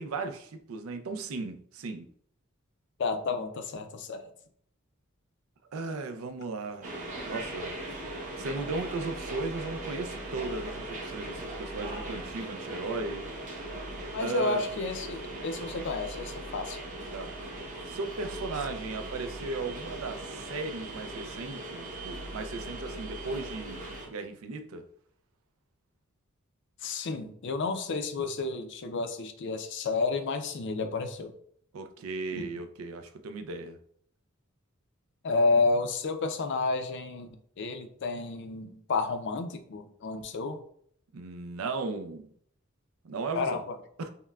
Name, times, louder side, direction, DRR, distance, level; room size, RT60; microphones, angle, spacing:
voice 1, 0.0-2.1 5.7-7.8 8.4-13.3 14.2-14.6 17.1-17.3 17.8-24.9 31.7-33.8 41.1-42.3 43.0-43.6 44.0-44.1, right 3 dB, 80° right, 0.4 m, -36 dB
voice 2, 3.0-4.2 14.1-16.8 26.8-31.3 32.3-32.4 35.2-37.3 37.6-40.6 43.3-43.8, left 3 dB, 60° left, 0.4 m, -30 dB
sound 1, 6.8-24.1, right 1 dB, 40° right, 0.9 m, -39 dB
5.5 x 2.1 x 2.3 m
head